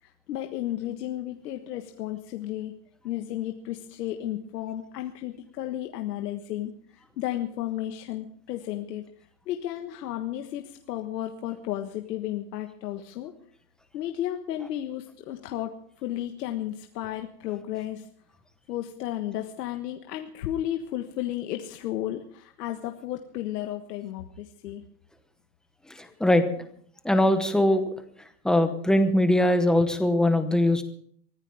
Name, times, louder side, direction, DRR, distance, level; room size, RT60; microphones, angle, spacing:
voice 1, 0.0-2.7 3.0-13.3 13.9-18.1 18.7-24.8, left 12 dB, 75° left, 5 dB, 1.5 m, -33 dB
voice 2, 26.0-26.4 27.0-27.9 28.4-30.8, left 1 dB, ahead, 7 dB, 0.9 m, -21 dB
23.5 x 14.5 x 3.5 m, 0.63 s
supercardioid pair, 160°, 48 cm